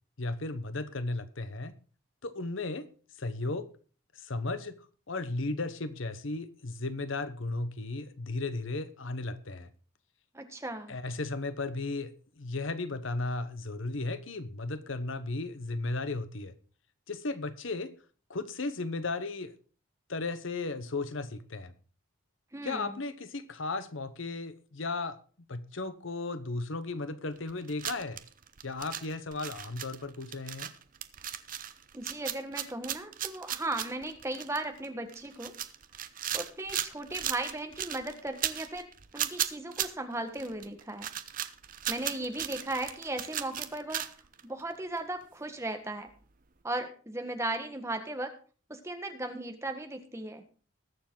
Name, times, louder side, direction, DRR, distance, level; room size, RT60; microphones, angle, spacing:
voice 1, 0.2-1.7 2.2-2.9 3.2-3.7 4.1-4.8 5.1-9.7 10.9-16.5 17.1-17.9 18.3-19.5 20.1-21.7 22.6-25.2 25.5-28.2 28.6-30.7, left 3 dB, 65° left, 12 dB, 1.0 m, -35 dB
voice 2, 10.3-10.9 22.5-23.0 31.9-35.5 36.3-38.9 39.1-41.1 41.9-44.0 44.4-46.1 46.6-48.3 48.7-50.4, right 2 dB, 15° right, 6 dB, 1.4 m, -36 dB
sound 1, 27.4-44.7 45.0-45.1 46.1-46.2, right 10 dB, 40° right, 0.7 m, -36 dB
20.0 x 7.1 x 3.8 m, 0.39 s
head